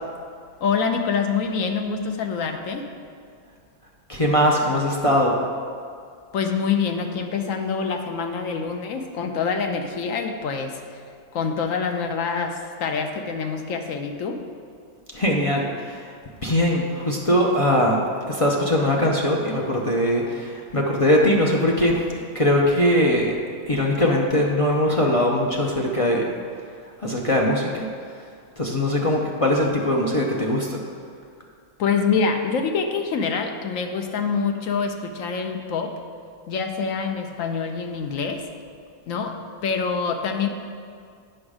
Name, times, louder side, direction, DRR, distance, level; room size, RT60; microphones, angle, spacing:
voice 1, 0.6-2.9 6.3-11.0 11.3-14.4 31.8-36.0 36.5-38.4 39.1-40.5, left 5 dB, 70° left, 5 dB, 1.0 m, -26 dB
voice 2, 4.1-5.4 15.1-16.1 16.4-22.0 22.3-23.4 23.7-26.3 26.8-27.9 28.6-30.8, left 1 dB, 40° left, -1 dB, 0.4 m, -21 dB
8.7 x 6.2 x 4.9 m, 2.3 s
omnidirectional pair, 1.6 m